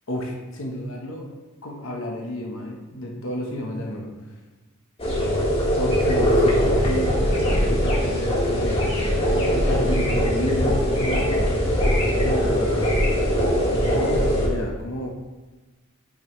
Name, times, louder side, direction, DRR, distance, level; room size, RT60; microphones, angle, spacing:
voice 1, 0.1-1.3 1.6-4.1 5.8-11.7 12.2-12.9 13.7-15.1, equal, 75° left, 0 dB, 1.1 m, -31 dB
sound 1, 5.0-14.5, equal, 30° left, 1.6 m, -21 dB
8.4 x 5.4 x 3.1 m, 1.2 s
head